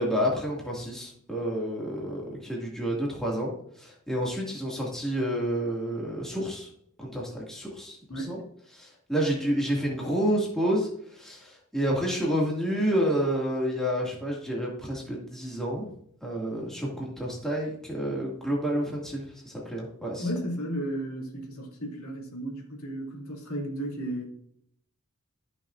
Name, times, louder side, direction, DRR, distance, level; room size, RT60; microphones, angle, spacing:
voice 1, 0.0-3.5 3.8-6.7 7.0-8.4 8.7-15.9 16.2-20.3, equal, ahead, -4 dB, 2.2 m, -29 dB
voice 2, 20.2-24.2, right 1 dB, 75° left, -2 dB, 2.8 m, -34 dB
14.5 x 6.3 x 2.6 m, 0.69 s
head